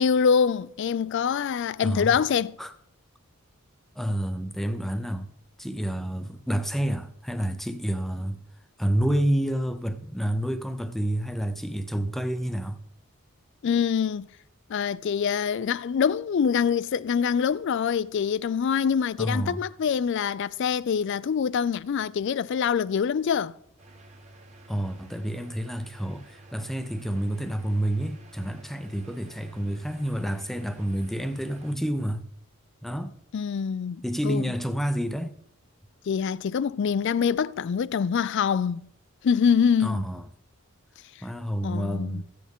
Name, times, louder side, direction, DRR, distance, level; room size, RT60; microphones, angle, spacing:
voice 1, 0.0-2.6 13.6-14.3 14.7-23.5 33.3-34.5 36.1-38.9 39.2-40.0 41.6-42.2, left 7 dB, 55° left, 0.3 m, -25 dB
voice 2, 1.8-2.1 2.6-2.7 4.0-5.3 5.6-8.4 8.8-12.8 19.2-19.6 24.7-32.3 32.8-33.1 34.0-35.3 39.8-40.2 41.2-42.2, equal, ahead, 0.5 m, -29 dB
sound 1, 23.8-31.8, right 2 dB, 30° right, 1.2 m, -50 dB
14.5 x 8.5 x 3.6 m
head